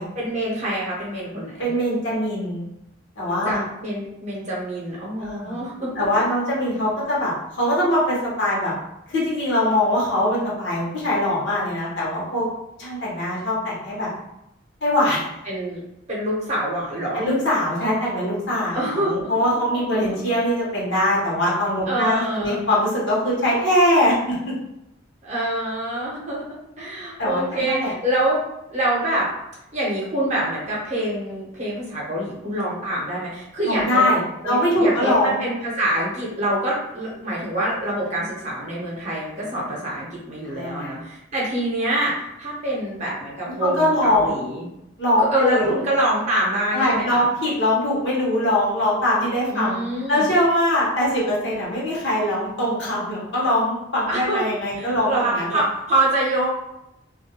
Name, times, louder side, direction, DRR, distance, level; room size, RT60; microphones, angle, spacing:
voice 1, 0.1-1.7 3.4-5.9 15.5-15.8 16.1-17.2 18.7-19.3 19.7-19.8 20.1-20.2 21.9-22.6 25.2-26.4 26.8-28.4 28.7-29.3 29.7-34.1 34.4-44.7 45.2-47.2 49.5-50.3 54.1-54.5 54.7-56.5, right 1 dB, 35° right, -5 dB, 0.8 m, -25 dB
voice 2, 1.6-2.7 3.2-3.6 5.2-5.5 6.0-8.7 9.1-12.5 12.8-14.1 14.8-15.2 17.1-24.3 27.2-27.9 33.6-35.4 40.5-41.0 43.5-44.4 45.0-45.7 46.7-49.8 50.1-55.6, left 1 dB, 65° left, -6 dB, 0.9 m, -22 dB
2.4 x 2.1 x 2.8 m, 0.87 s
head